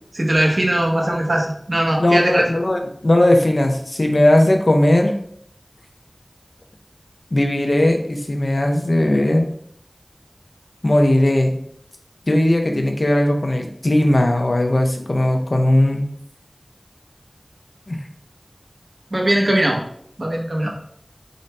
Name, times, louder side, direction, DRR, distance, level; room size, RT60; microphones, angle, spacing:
voice 1, 0.1-2.4 19.1-19.8 20.2-20.7, right 1 dB, 75° right, 0 dB, 0.8 m, -19 dB
voice 2, 2.0-5.1 7.3-9.5 10.8-11.5 12.3-16.0 17.9-18.0, left 1 dB, 70° left, 3 dB, 0.6 m, -17 dB
3.8 x 2.1 x 4.0 m, 0.65 s
wide cardioid pair, 45°, 0 cm